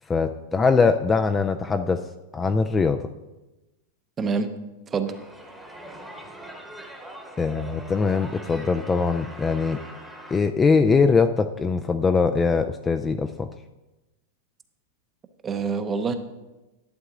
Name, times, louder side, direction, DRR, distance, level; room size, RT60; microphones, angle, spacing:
voice 1, 0.1-2.0 2.3-3.1 7.4-9.8 10.3-13.5, left 4 dB, 15° left, 7 dB, 0.3 m, -22 dB
voice 2, 4.2-4.5 4.9-5.1 15.4-16.1, right 5 dB, 20° right, 9 dB, 0.7 m, -26 dB
sound 1, 5.1-10.4, right 1 dB, ahead, 1.0 m, -42 dB
11.5 x 7.3 x 3.7 m, 1.0 s
supercardioid pair, 145°, 0 cm